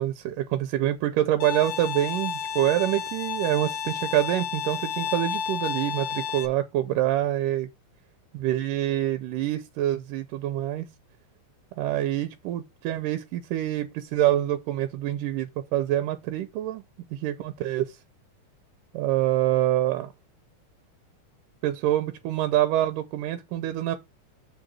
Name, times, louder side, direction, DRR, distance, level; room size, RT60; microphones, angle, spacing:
voice 1, 0.0-7.7 8.3-10.9 11.8-16.8 17.1-18.0 18.9-20.1 21.6-24.0, right 13 dB, 90° right, 2.3 m, -26 dB
Bowed string instrument, 1.4-6.5, left 7 dB, 70° left, 1.7 m, -31 dB
7.1 x 3.9 x 6.2 m
omnidirectional pair, 3.8 m